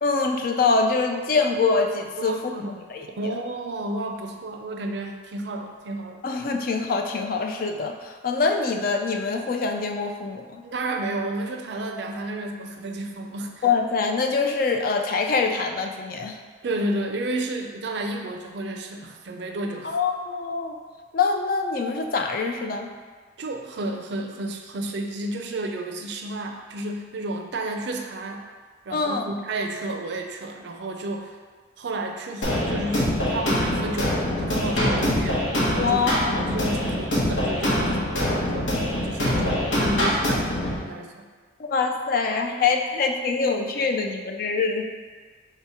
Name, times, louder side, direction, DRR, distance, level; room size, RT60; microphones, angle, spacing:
voice 1, 0.0-2.4 2.9-3.4 6.2-10.6 13.6-16.4 19.8-20.8 21.1-22.9 28.9-29.2 35.7-36.5 41.7-44.8, left 4 dB, 50° left, 4 dB, 0.3 m, -24 dB
voice 2, 2.2-2.8 3.2-6.2 10.6-13.7 16.6-19.9 23.4-28.4 28.9-31.4 31.8-38.7 39.0-41.3, right 2 dB, 65° right, 3 dB, 0.4 m, -31 dB
sound 1, 32.4-40.8, left 1 dB, 90° left, 1.1 m, -24 dB
3.3 x 2.9 x 4.7 m, 1.5 s
head